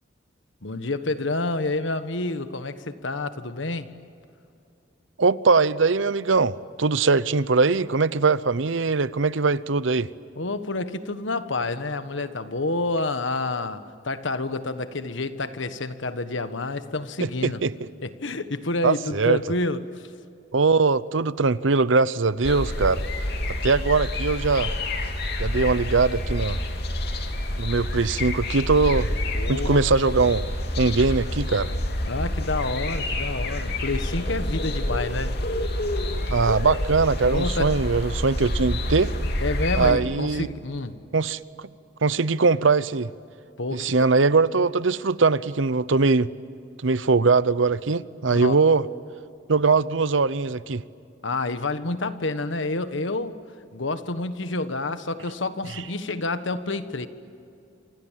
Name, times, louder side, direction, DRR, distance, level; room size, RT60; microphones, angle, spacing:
voice 1, 0.6-3.9 10.3-17.6 18.0-20.1 29.3-30.0 32.1-35.4 37.2-37.7 39.4-40.9 43.6-44.0 48.3-48.5 51.2-53.4 53.7-57.1, left 2 dB, 75° left, 1.5 m, -29 dB
voice 2, 5.2-10.1 17.2-17.7 18.8-19.4 20.5-23.0 23.6-24.7 25.4-26.6 27.6-29.1 29.5-30.4 30.8-31.7 36.3-39.1 39.7-40.5 41.1-41.4 42.0-43.1 43.7-46.3 46.8-48.8 49.5-50.8, right 4 dB, 80° right, 0.8 m, -21 dB
sound 1, 22.4-39.9, left 1 dB, 55° left, 2.9 m, -28 dB
28.0 x 27.0 x 7.6 m
head